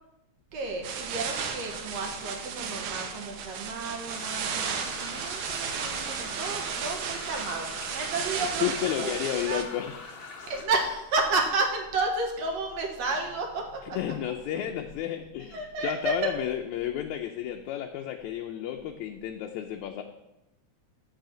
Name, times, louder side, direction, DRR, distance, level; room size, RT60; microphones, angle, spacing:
voice 1, 0.5-9.1 9.5-9.6 10.5-14.0 15.5-16.1, right 3 dB, 65° right, 2 dB, 2.2 m, -31 dB
sound 1, 0.8-9.6, right 6 dB, 85° right, 2.3 m, -34 dB
sound 2, 4.1-10.6, left 3 dB, 50° left, 1.8 m, -43 dB
voice 2, 8.4-10.2 13.8-20.0, left 10 dB, 80° left, 3 dB, 2.0 m, -32 dB
7.6 x 5.6 x 7.6 m, 0.91 s
omnidirectional pair, 3.3 m